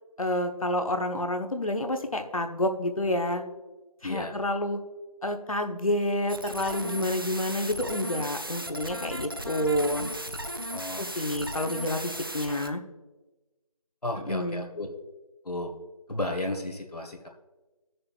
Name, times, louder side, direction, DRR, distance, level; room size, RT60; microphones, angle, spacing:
voice 1, 0.2-3.4 4.0-4.8 5.2-10.1 11.0-12.8 14.3-14.6, left 1 dB, 65° left, 5 dB, 1.1 m, -29 dB
voice 2, 4.0-4.4 10.7-11.1 14.0-14.9 15.4-15.7 16.1-17.3, left 1 dB, 80° left, 3 dB, 1.8 m, -33 dB
sound 1, 6.3-12.7, right 1 dB, 35° right, 0.4 m, -36 dB
17.5 x 6.7 x 2.5 m, 1.1 s
figure-of-eight pair, 170°, 19 cm